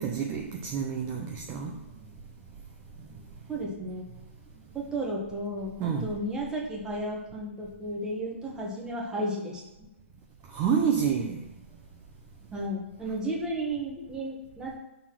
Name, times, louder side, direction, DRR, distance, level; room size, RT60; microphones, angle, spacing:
voice 1, 0.0-1.8 5.8-6.1 10.5-11.4, right 7 dB, 25° right, 1 dB, 0.6 m, -28 dB
voice 2, 3.5-4.0 4.7-9.9 12.5-14.7, right 1 dB, 10° right, -2 dB, 1.4 m, -33 dB
5.9 x 4.0 x 6.0 m, 1.0 s
hypercardioid pair, 135°, 7 cm